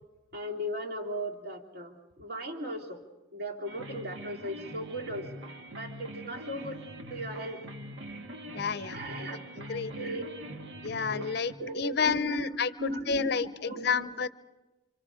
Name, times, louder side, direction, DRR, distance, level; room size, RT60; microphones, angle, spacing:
voice 1, 0.3-3.0 3.3-5.3 5.8-6.8 7.1-7.7 8.9-10.2 11.1-11.2 11.6-14.0, equal, 55° right, 0 dB, 2.7 m, -37 dB
sound 1, 3.7-11.5, equal, 75° right, 1.8 m, -43 dB
voice 2, 8.5-9.0 9.7-9.9 10.8-13.5 13.8-14.3, left 5 dB, 55° left, 15 dB, 0.7 m, -30 dB
28.0 x 26.0 x 5.0 m, 1.1 s
head